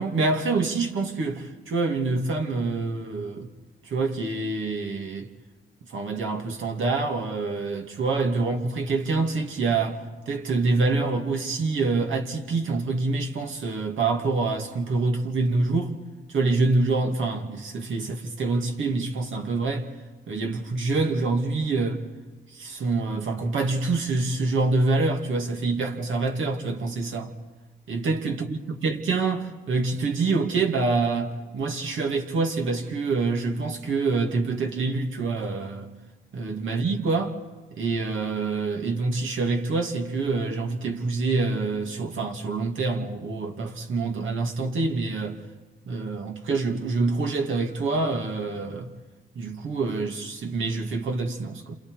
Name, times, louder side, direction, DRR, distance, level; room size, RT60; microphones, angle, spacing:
voice 1, 0.0-3.5 3.8-5.3 5.9-15.9 16.3-19.9 20.3-22.0 22.5-27.3 27.9-35.9 36.3-37.4 37.7-45.4 45.9-48.9 49.4-51.8, right 3 dB, 75° right, 2.6 m, -26 dB
30.0 x 28.0 x 4.9 m
cardioid pair, 85°, 20 cm